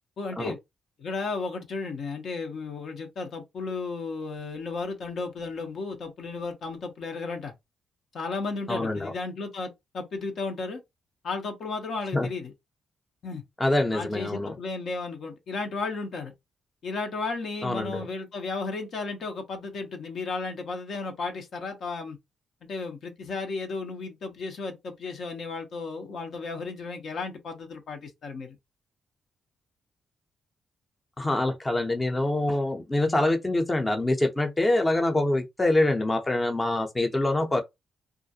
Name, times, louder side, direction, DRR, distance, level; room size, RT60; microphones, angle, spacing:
voice 1, 0.2-0.6 1.0-7.5 8.1-10.8 11.2-12.5 13.2-13.4 13.9-16.3 16.8-22.2 22.6-28.6, left 3 dB, 65° left, 0.6 m, -34 dB
voice 2, 8.7-9.1 12.1-12.3 13.6-14.6 17.6-18.1 31.2-37.6, left 2 dB, 20° left, 0.6 m, -25 dB
2.4 x 2.1 x 2.7 m
supercardioid pair, 65°, 0 cm